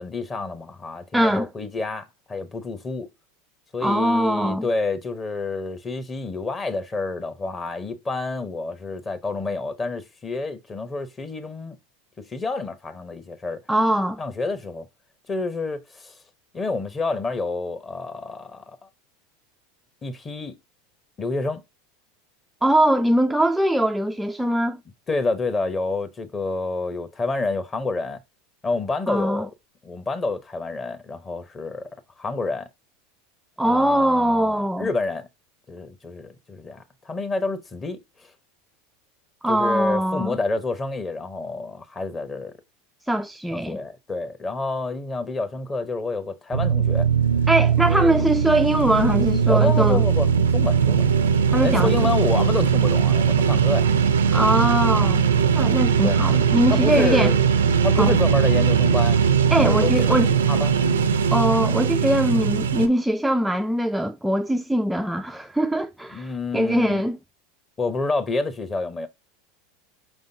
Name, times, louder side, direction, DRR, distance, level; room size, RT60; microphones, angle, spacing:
voice 1, 0.0-3.1 3.7-11.8 12.2-13.6 14.2-14.9 15.3-16.1 16.5-18.9 20.0-20.6 21.2-21.6 25.1-28.2 28.6-29.5 29.8-31.9 32.2-32.7 33.6-35.3 35.7-38.0 39.5-42.5 43.5-47.1 47.9-48.3 49.5-51.1 51.6-53.9 56.0-56.2 56.7-57.4 57.8-59.2 59.6-59.9 60.5-60.8 66.1-67.0 67.8-69.1, left 3 dB, 25° left, 1.0 m, -28 dB
voice 2, 1.1-1.5 3.8-4.7 13.7-14.2 22.6-24.8 29.1-29.5 33.6-34.9 39.4-40.4 43.1-43.8 47.5-50.1 51.5-51.9 54.3-55.3 55.5-57.3 58.0-58.2 59.5-60.3 61.3-67.2, right 1 dB, 5° right, 0.3 m, -22 dB
sound 1, 46.5-62.9, right 7 dB, 90° right, 0.4 m, -20 dB
5.3 x 3.5 x 2.7 m
hypercardioid pair, 95°, 0 cm